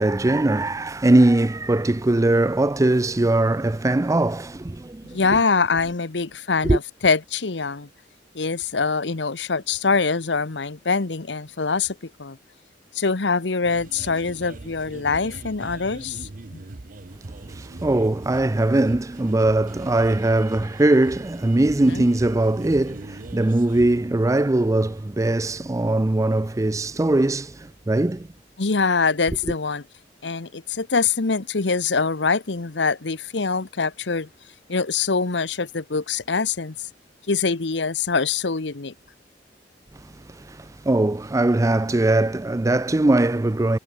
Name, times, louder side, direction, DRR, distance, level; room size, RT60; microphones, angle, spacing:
voice 1, 0.0-5.2 6.6-6.8 17.5-28.3 39.9-43.8, right 2 dB, 20° right, 0.5 m, -21 dB
voice 2, 5.1-7.9 8.3-12.4 12.9-16.6 21.8-22.1 28.6-29.8 30.2-34.3 34.7-36.9 37.3-38.9, left 4 dB, 85° left, 1.1 m, -24 dB
sound 1, 13.6-24.0, right 2 dB, 50° right, 0.8 m, -41 dB
head